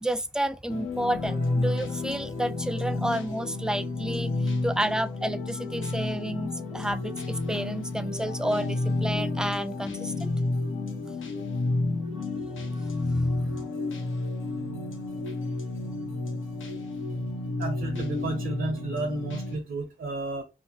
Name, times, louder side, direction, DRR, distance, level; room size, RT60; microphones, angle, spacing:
voice 1, 0.0-4.3 4.6-10.3 13.1-13.3, right 1 dB, 5° right, 0.3 m, -30 dB
sound 1, 0.7-19.6, left 2 dB, 80° left, 0.7 m, -31 dB
voice 2, 17.6-20.4, right 3 dB, 75° right, 0.7 m, -32 dB
2.7 x 2.0 x 3.0 m
cardioid pair, 45°, 20 cm